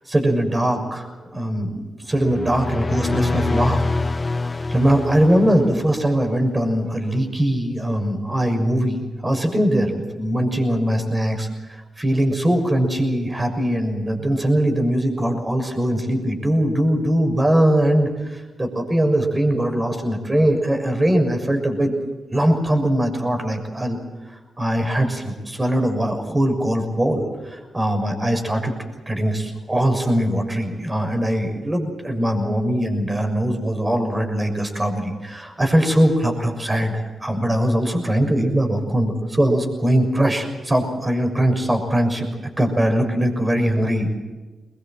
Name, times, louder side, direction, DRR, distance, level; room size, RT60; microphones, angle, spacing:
voice 1, 0.1-1.1 1.3-3.9 4.7-21.9 22.3-24.0 24.3-28.7 29.1-42.3 42.6-44.2, right 1 dB, 20° right, 4 dB, 6.5 m, -21 dB
sound 1, 2.1-6.0, left 3 dB, 35° left, 1.0 m, -24 dB
23.5 x 21.5 x 7.6 m, 1.3 s
supercardioid pair, 45°, 0 cm